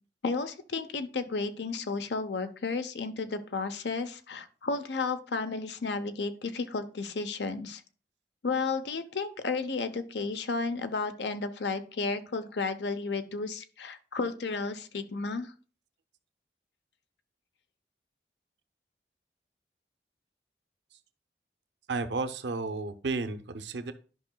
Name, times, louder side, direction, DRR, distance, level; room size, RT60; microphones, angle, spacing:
voice 1, 0.2-7.8 8.4-15.5, left 4 dB, 85° left, 10 dB, 0.7 m, -33 dB
voice 2, 21.9-23.9, right 3 dB, 90° right, 10 dB, 0.6 m, -32 dB
11.0 x 5.6 x 2.2 m, 0.39 s
head